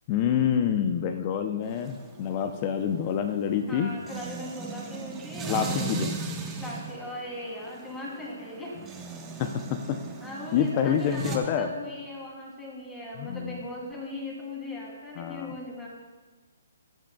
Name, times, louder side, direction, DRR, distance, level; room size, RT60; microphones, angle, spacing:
voice 1, 0.1-3.9 5.5-6.2 9.4-10.0 10.5-11.7 13.2-13.6 15.2-15.6, left 8 dB, 35° left, 7 dB, 0.6 m, -27 dB
sound 1, 1.6-11.4, right 5 dB, 15° right, 1.1 m, -38 dB
voice 2, 3.7-5.9 6.6-8.8 10.2-15.9, left 1 dB, 15° left, -4 dB, 3.1 m, -38 dB
20.5 x 7.6 x 2.3 m, 1.3 s
hypercardioid pair, 140°, 0 cm